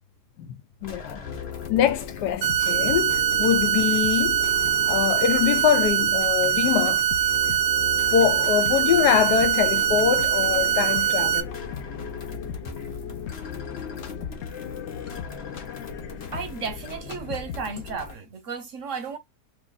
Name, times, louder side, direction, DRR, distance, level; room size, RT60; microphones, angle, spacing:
voice 1, 0.4-1.2 1.7-4.4 4.9-7.0 8.1-11.5, left 9 dB, 85° left, 1.2 m, -23 dB
sound 1, 0.8-18.2, left 4 dB, 45° left, 1.0 m, -41 dB
sound 2, 1.2-18.0, left 8 dB, 65° left, 0.7 m, -38 dB
sound 3, 2.4-11.4, right 9 dB, 85° right, 1.2 m, -23 dB
voice 2, 16.3-19.2, right 5 dB, 65° right, 0.9 m, -33 dB
2.8 x 2.7 x 3.8 m
omnidirectional pair, 1.8 m